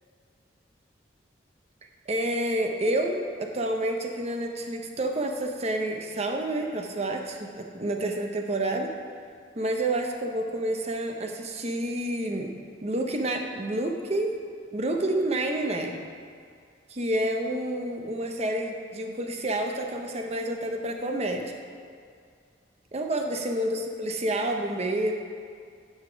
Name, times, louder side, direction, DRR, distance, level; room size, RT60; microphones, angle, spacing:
voice 1, 2.1-8.9 9.6-12.5 12.8-14.3 14.7-16.0 16.9-21.5 22.9-25.1, right 1 dB, 35° right, 3 dB, 0.7 m, -29 dB
9.8 x 5.7 x 5.0 m, 2.2 s
head